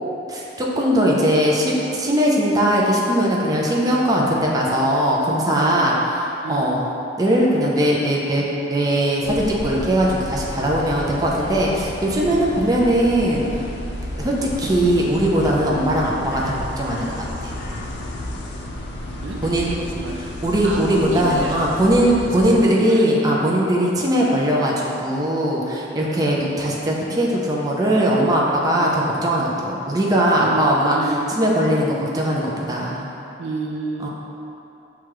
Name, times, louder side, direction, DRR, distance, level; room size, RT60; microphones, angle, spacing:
voice 1, 0.3-5.9 6.5-6.8 7.2-13.6 14.2-17.5 19.4-19.7 20.4-31.0 31.4-33.2 34.0-34.1, right 1 dB, 20° right, -3 dB, 0.4 m, -20 dB
voice 2, 5.5-5.8 6.4-6.8 12.2-12.5 19.2-20.2 20.6-23.2 25.7-26.1 28.6-28.9 30.4-31.2 33.4-34.1, right 2 dB, 85° right, 0 dB, 0.5 m, -31 dB
sound 1, 9.2-22.6, left 1 dB, 60° left, 0.5 m, -32 dB
6.3 x 2.3 x 3.0 m, 2.8 s
head